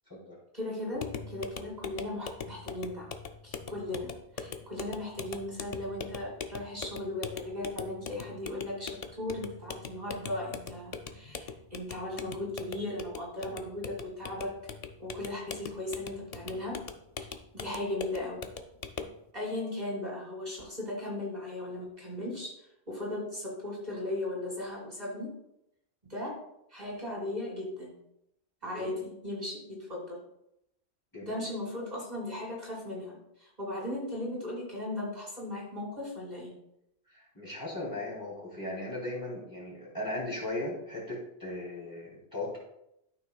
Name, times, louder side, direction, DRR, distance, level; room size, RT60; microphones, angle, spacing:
voice 1, 0.5-3.1 3.4-14.5 15.0-16.8 17.2-17.3 17.5-18.4 19.3-22.5 22.9-25.3 26.1-26.4 26.7-27.9 28.6-30.2 31.2-36.5, left 1 dB, 40° right, -3 dB, 2.2 m, -37 dB
sound 1, 1.0-19.2, left 5 dB, 50° left, 0.5 m, -42 dB
voice 2, 31.1-31.5 37.1-42.6, left 1 dB, 20° left, -5 dB, 2.8 m, -37 dB
13.0 x 5.8 x 2.3 m, 0.80 s
omnidirectional pair, 1.2 m